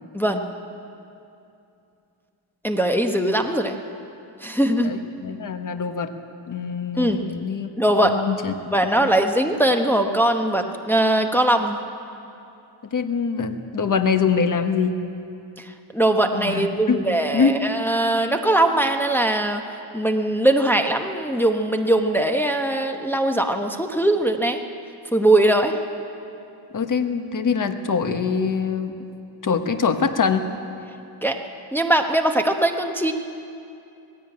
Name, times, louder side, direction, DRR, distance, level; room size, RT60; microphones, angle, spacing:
voice 1, 2.6-3.8 4.4-4.9 7.0-7.2 7.8-8.2 8.7-11.8 15.6-19.6 19.9-24.6 25.1-25.8 31.2-31.4 31.7-33.1, right 1 dB, 5° left, 4 dB, 1.0 m, -21 dB
voice 2, 4.8-6.1 6.5-7.7 8.0-8.5 9.0-9.2 12.9-15.0 16.3-17.1 17.3-17.6 26.7-29.1 29.4-30.4, left 5 dB, 40° left, 7 dB, 1.3 m, -24 dB
18.0 x 16.5 x 8.8 m, 2.7 s
cardioid pair, 110°, 48 cm